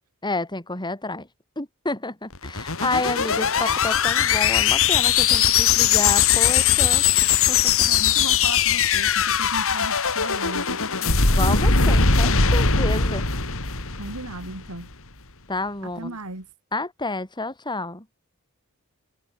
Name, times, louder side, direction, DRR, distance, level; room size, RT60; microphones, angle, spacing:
voice 1, 0.2-1.3 1.6-7.0 7.5-7.9 11.3-13.3 15.5-16.2 16.7-18.1, left 2 dB, 20° left, 6.9 m, -29 dB
sound 1, 2.3-14.7, left 6 dB, 65° left, 4.8 m, -20 dB
voice 2, 7.9-10.8 14.0-14.9 15.8-16.5, right 2 dB, 85° right, 3.8 m, -36 dB
head